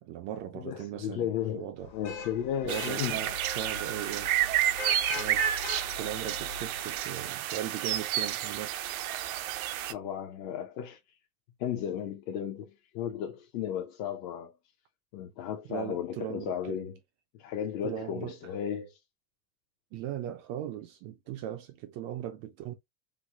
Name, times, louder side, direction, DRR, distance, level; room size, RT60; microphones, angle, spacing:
voice 1, 0.0-1.9 2.6-4.3 5.1-5.5 6.0-9.0 15.7-16.8 17.8-18.4 19.9-22.7, right 11 dB, 30° right, 0.4 m, -38 dB
voice 2, 0.5-3.2 9.9-11.0 11.6-14.5 15.1-17.0 17.3-19.0, left 9 dB, 40° left, 0.6 m, -34 dB
Vehicle horn car horn honking / Traffic noise roadway noise, 1.8-7.1, left 5 dB, 70° left, 1.3 m, -41 dB
sound 1, 2.7-9.9, right 12 dB, 75° right, 0.6 m, -31 dB
3.2 x 2.0 x 3.5 m
supercardioid pair, 130°, 43 cm